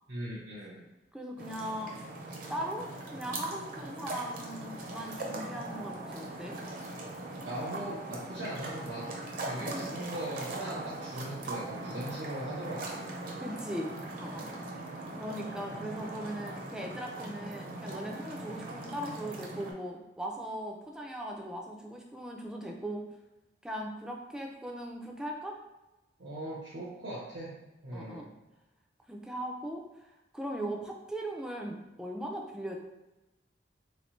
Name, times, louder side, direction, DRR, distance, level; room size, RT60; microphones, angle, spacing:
voice 1, 0.1-0.8 7.4-9.1 9.4-13.5 26.2-27.5 27.8-28.2, right 1 dB, 90° right, -9 dB, 1.0 m, -39 dB
voice 2, 1.1-2.1 2.5-6.6 9.6-9.9 13.4-13.9 14.2-14.5 15.2-23.1 23.6-25.6 27.9-28.3 29.1-29.8 30.3-32.8, right 1 dB, 5° right, 1 dB, 0.4 m, -39 dB
sound 1, 1.4-19.7, right 2 dB, 50° right, 0.6 m, -40 dB
3.2 x 3.1 x 3.1 m, 1.0 s
head